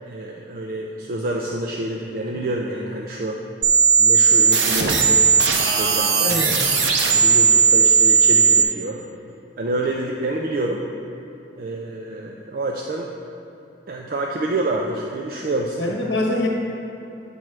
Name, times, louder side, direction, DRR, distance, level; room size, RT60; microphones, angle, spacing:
voice 1, 0.0-3.4 4.0-6.4 7.1-9.0 9.6-10.8 11.6-13.1 13.9-15.8, right 2 dB, 50° right, 0 dB, 0.4 m, -28 dB
sound 1, 3.6-8.6, right 6 dB, 75° right, 0.8 m, -16 dB
voice 2, 6.2-6.7 15.8-16.5, left 1 dB, 70° left, -1 dB, 1.2 m, -24 dB
9.1 x 3.2 x 5.9 m, 2.9 s
head